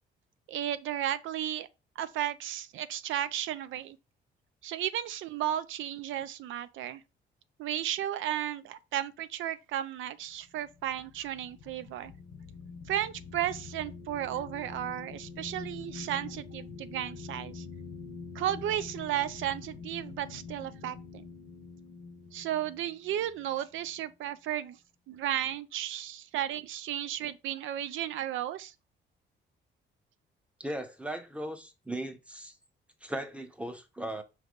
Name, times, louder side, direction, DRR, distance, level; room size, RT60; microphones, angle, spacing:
voice 1, 0.5-1.7 2.0-4.0 4.6-7.0 7.6-12.1 12.9-17.7 18.3-21.2 22.3-24.8 25.1-28.7, right 11 dB, 80° right, 0.5 m, -34 dB
sound 1, 10.4-24.1, left 4 dB, 60° left, 0.8 m, -45 dB
voice 2, 30.6-32.5 33.0-34.2, right 1 dB, 5° right, 0.8 m, -37 dB
5.2 x 3.3 x 2.4 m
cardioid pair, 90°, 20 cm